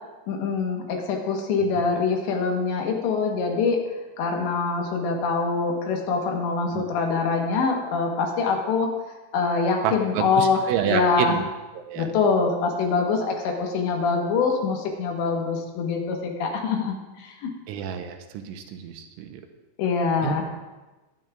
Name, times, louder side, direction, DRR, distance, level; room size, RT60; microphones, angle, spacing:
voice 1, 0.3-3.8 4.2-8.9 9.3-10.6 10.9-11.3 12.0-17.5 19.8-20.4, left 4 dB, 75° left, 1 dB, 3.2 m, -24 dB
voice 2, 9.8-11.4 11.8-12.1 17.7-19.4 20.2-20.3, right 9 dB, 85° right, 5 dB, 3.2 m, -29 dB
21.5 x 9.2 x 2.4 m, 1.2 s
omnidirectional pair, 5.7 m